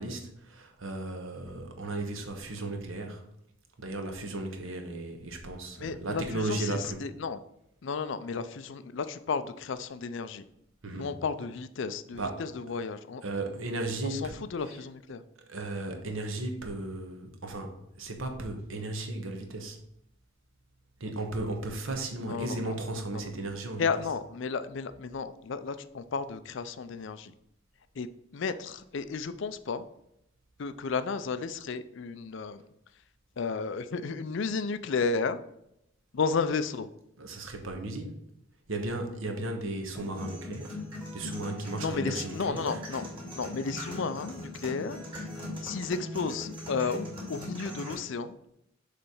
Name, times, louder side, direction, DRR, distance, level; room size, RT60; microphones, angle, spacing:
voice 1, 0.0-3.2 3.8-7.0 10.8-11.1 12.1-12.4 13.2-14.3 14.6-14.7 15.5-17.7 18.0-19.8 21.0-23.9 37.2-38.2 38.7-40.8 41.1-42.8, right 2 dB, 70° right, 4 dB, 1.2 m, -35 dB
voice 2, 5.8-7.4 7.8-10.4 10.9-13.2 14.1-15.2 22.2-22.7 23.8-27.3 28.0-28.1 28.3-29.8 30.6-32.6 33.4-35.4 36.1-36.9 41.8-43.0 43.4-45.0 45.6-47.0 47.3-48.4, left 5 dB, 60° left, 12 dB, 0.4 m, -33 dB
sound 1, 39.9-47.9, left 1 dB, 25° right, 2.6 m, -40 dB
6.9 x 3.3 x 5.4 m, 0.79 s
head